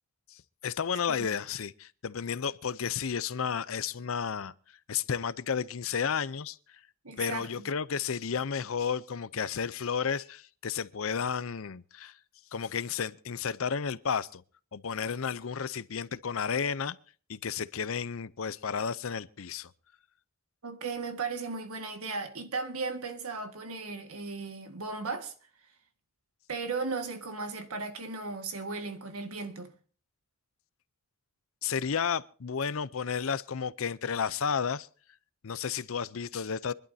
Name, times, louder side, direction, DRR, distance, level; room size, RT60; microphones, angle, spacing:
voice 1, 0.3-4.5 4.9-6.8 7.2-12.2 12.5-14.4 14.7-17.0 17.3-19.7 31.6-34.9 35.4-36.7, left 6 dB, 65° left, 0.6 m, -32 dB
voice 2, 7.0-7.5 20.6-25.3 26.5-29.7, right 4 dB, 80° right, 1.8 m, -36 dB
25.5 x 11.5 x 2.7 m
head